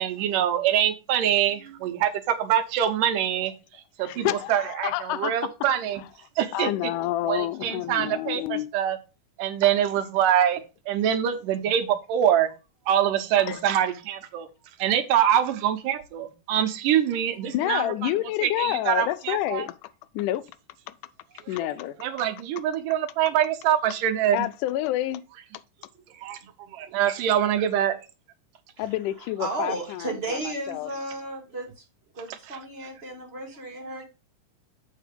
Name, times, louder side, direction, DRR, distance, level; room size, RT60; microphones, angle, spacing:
voice 1, 0.0-6.0 6.4-6.9 7.3-9.0 9.4-12.5 12.9-14.5 14.8-18.1 18.4-19.7 22.0-24.5 26.1-26.4 26.7-28.0 32.3-32.6, right 10 dB, 90° right, 2.5 m, -24 dB
voice 2, 4.0-5.5 6.5-8.7 13.4-13.6 17.5-20.5 20.9-21.0 21.5-22.0 24.3-25.2 28.8-30.9, left 14 dB, 85° left, 2.0 m, -29 dB
voice 3, 21.4-21.8 26.8-26.9 29.4-31.8 32.1-34.1, right 2 dB, 25° right, 1.8 m, -34 dB
7.5 x 4.6 x 5.1 m
omnidirectional pair, 3.7 m